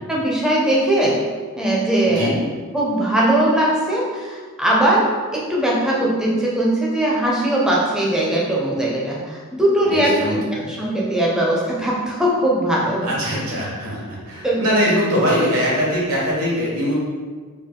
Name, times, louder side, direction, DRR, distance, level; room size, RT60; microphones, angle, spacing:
voice 1, 0.1-1.2 1.6-2.3 2.7-10.4 10.7-13.1 14.4-14.6, right 1 dB, 5° right, -5 dB, 0.6 m, -20 dB
voice 2, 2.0-2.4 9.8-10.7 13.0-16.9, equal, 70° right, -5 dB, 1.3 m, -22 dB
3.7 x 2.4 x 3.7 m, 1.5 s
head